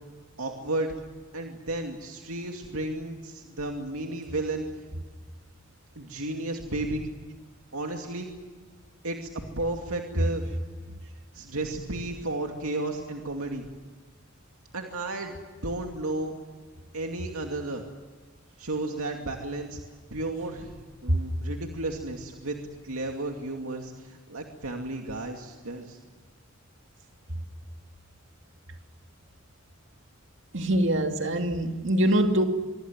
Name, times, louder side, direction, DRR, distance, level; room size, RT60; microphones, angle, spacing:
voice 1, 0.4-0.9 1.3-4.7 6.0-7.1 7.7-8.3 9.0-9.3 9.6-10.4 11.3-13.6 14.7-15.3 15.6-16.3 16.9-17.8 18.6-19.8 20.1-22.6 22.8-26.0, right 2 dB, 85° right, 2.5 m, -33 dB
voice 2, 30.5-32.4, right 1 dB, 60° right, 2.6 m, -23 dB
25.0 x 24.0 x 7.5 m
head